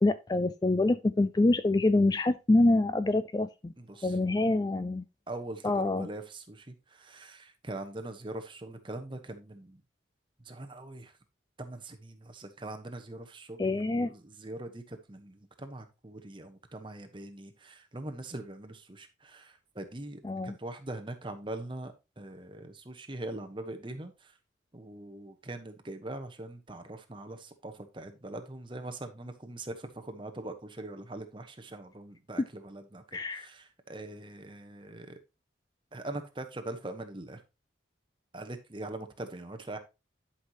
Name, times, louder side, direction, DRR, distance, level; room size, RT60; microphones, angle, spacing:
voice 1, 0.0-3.7 4.0-5.0 5.6-6.1 13.6-14.1 20.2-20.6 33.1-33.5, left 2 dB, 20° left, 12 dB, 0.3 m, -26 dB
voice 2, 3.8-4.2 5.3-9.8 10.4-11.1 11.6-13.7 14.0-24.3 24.7-35.2 35.9-37.4 38.3-39.8, right 2 dB, 25° right, 6 dB, 1.1 m, -42 dB
11.0 x 5.7 x 2.9 m, 0.27 s
head